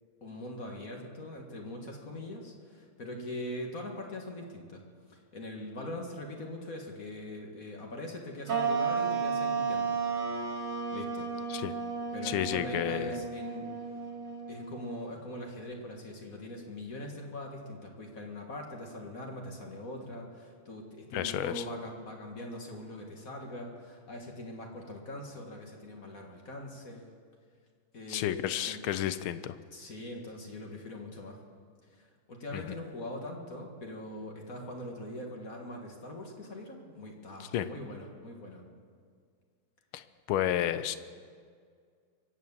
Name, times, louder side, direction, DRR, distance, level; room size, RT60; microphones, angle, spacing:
voice 1, 0.2-4.8 5.1-10.0 10.9-11.3 12.1-13.7 14.5-27.1 27.9-28.8 29.7-31.4 31.9-38.7, left 1 dB, 45° left, 1 dB, 2.0 m, -42 dB
sound 1, 8.5-15.2, right 5 dB, 55° right, 2.2 m, -33 dB
voice 2, 12.2-13.2 21.1-21.6 28.1-29.6 32.5-32.6 37.4-37.7 39.9-41.0, left 11 dB, 80° left, 13 dB, 1.5 m, -31 dB
23.5 x 8.4 x 7.2 m, 2.1 s
omnidirectional pair, 2.3 m